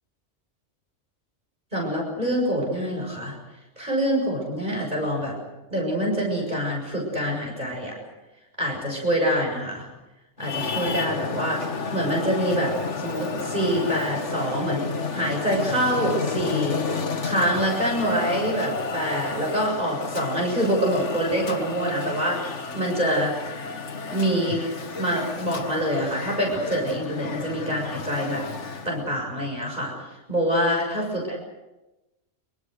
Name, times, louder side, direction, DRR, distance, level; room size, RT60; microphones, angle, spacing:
voice 1, 1.7-3.4 3.8-5.4 5.7-8.0 8.6-9.9 10.4-16.8 17.2-23.4 24.1-24.7 25.0-28.4 28.8-31.4, equal, 40° right, -1 dB, 6.9 m, -26 dB
Traffic noise roadway noise, 10.4-29.0, left 4 dB, 75° left, 1.7 m, -32 dB
26.5 x 24.5 x 6.5 m, 1.0 s
omnidirectional pair, 1.2 m